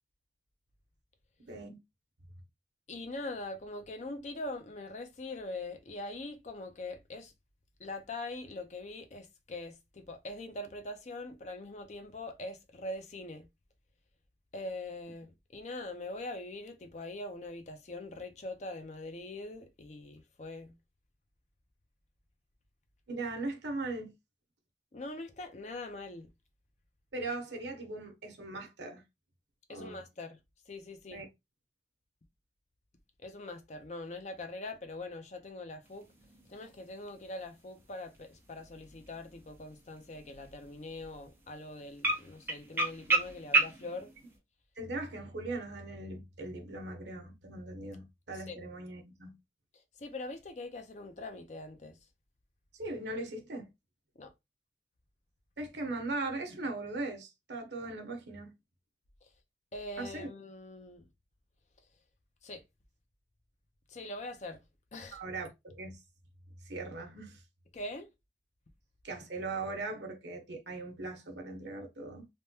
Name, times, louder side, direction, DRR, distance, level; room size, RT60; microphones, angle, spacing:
voice 1, 1.4-1.8 23.1-24.1 27.1-29.0 29.7-30.0 31.1-31.3 44.8-49.3 52.7-53.7 55.6-58.5 60.0-60.3 65.1-66.0 66.6-67.4 69.0-72.3, right 2 dB, 80° right, 0.9 m, -39 dB
voice 2, 2.9-7.3 7.8-13.5 14.5-20.7 24.9-26.3 29.7-30.4 30.7-31.2 33.2-36.1 36.5-44.1 48.5-48.6 50.0-52.0 54.2-54.3 59.7-61.0 62.4-62.6 63.9-64.6 64.9-65.2 67.7-68.1, left 2 dB, 40° left, 0.5 m, -42 dB
sound 1, 35.8-44.4, right 3 dB, 10° right, 0.8 m, -36 dB
3.3 x 2.2 x 2.7 m
head